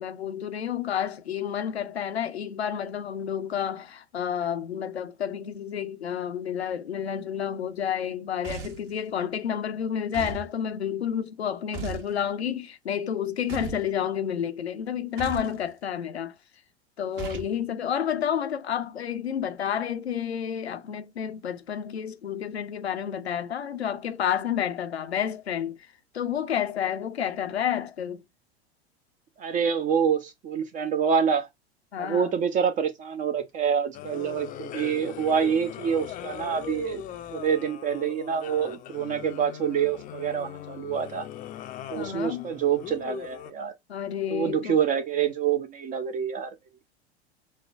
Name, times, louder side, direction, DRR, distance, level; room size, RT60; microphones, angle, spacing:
voice 1, 0.0-16.3 17.0-25.8 26.1-28.2 31.9-32.4 42.0-42.5 43.9-44.8, left 9 dB, 75° left, 0.6 m, -30 dB
sound 1, 8.4-8.9 10.1-10.5 11.7-12.1 13.5-13.9 15.2-15.5 17.2-17.5, right 5 dB, 55° right, 1.3 m, -36 dB
voice 2, 29.4-31.5 32.0-37.0 37.3-41.2 41.9-43.7 44.3-46.5, right 7 dB, 25° right, 0.5 m, -26 dB
sound 2, 33.9-43.5, left 10 dB, 25° left, 0.5 m, -40 dB
6.3 x 2.1 x 2.3 m
figure-of-eight pair, 80°, 32 cm